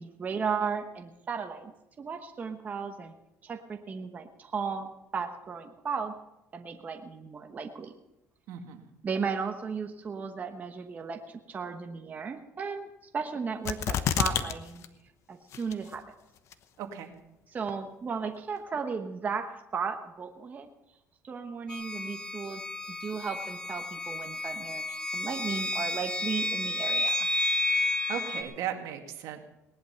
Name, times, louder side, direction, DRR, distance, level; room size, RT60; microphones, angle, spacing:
voice 1, 0.0-3.2 3.4-4.9 5.1-6.1 6.5-7.9 9.0-12.9 13.1-14.8 15.3-16.0 17.5-20.7 21.2-27.2, right 5 dB, 30° right, 4 dB, 1.0 m, -35 dB
voice 2, 8.5-8.9 16.8-17.1 27.8-29.4, right 9 dB, 70° right, 5 dB, 2.0 m, -37 dB
sound 1, 13.7-14.5 14.8-14.9 15.5-16.0 16.5-16.6, left 9 dB, 55° left, 1.0 m, -28 dB
sound 2, 21.7-28.4, left 2 dB, 15° left, 1.7 m, -31 dB
18.5 x 11.0 x 5.8 m, 0.93 s
cardioid pair, 130°, 6 cm